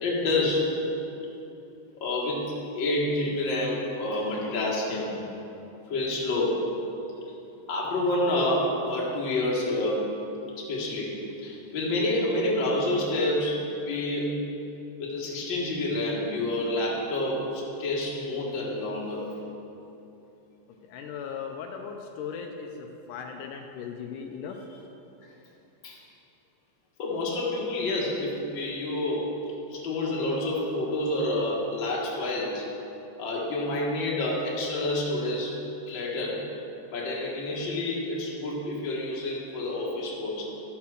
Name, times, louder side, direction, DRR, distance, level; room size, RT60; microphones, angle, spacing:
voice 1, 0.0-0.8 2.0-5.2 5.9-6.7 7.7-10.2 10.6-14.4 15.0-19.3 25.8-26.0 27.0-29.3 29.7-32.7 33.2-35.5 35.9-36.5 36.9-40.6, left 1 dB, 45° left, -4 dB, 1.9 m, -28 dB
voice 2, 20.9-24.9, left 6 dB, 80° left, 3 dB, 2.1 m, -38 dB
12.5 x 5.8 x 6.4 m, 2.9 s
omnidirectional pair, 3.8 m